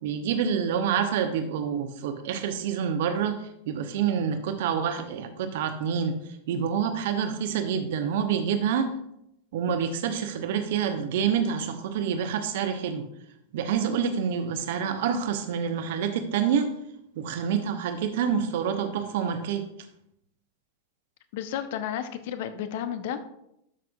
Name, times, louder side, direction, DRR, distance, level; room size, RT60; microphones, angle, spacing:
voice 1, 0.0-6.2 6.5-8.9 9.5-13.0 13.5-16.7 17.1-19.6, right 7 dB, 55° right, 8 dB, 0.9 m, -27 dB
voice 2, 21.3-23.2, left 9 dB, 50° left, 11 dB, 0.7 m, -32 dB
12.0 x 6.0 x 2.3 m, 0.80 s
figure-of-eight pair, 90°, 0 cm